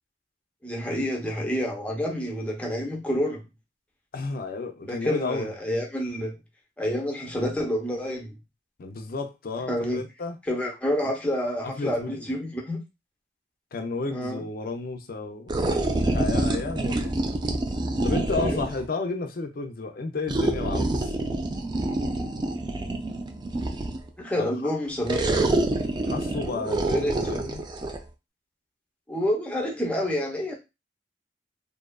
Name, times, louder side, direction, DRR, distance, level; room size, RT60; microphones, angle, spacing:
voice 1, 0.6-3.4 4.9-6.3 6.8-8.4 9.7-10.0 10.5-12.8 14.1-14.4 18.4-18.7 24.2-25.5 26.9-27.4 29.1-30.5, equal, 5° left, 0.6 m, -28 dB
voice 2, 4.1-5.5 8.8-10.4 11.6-12.3 13.7-15.6 16.0-17.1 18.0-21.1 24.4-24.5 26.1-27.6, left 3 dB, 55° left, 0.4 m, -32 dB
sound 1, 15.5-18.9 20.3-24.1 25.1-28.0, right 2 dB, 25° right, 0.3 m, -27 dB
2.6 x 2.4 x 2.2 m
head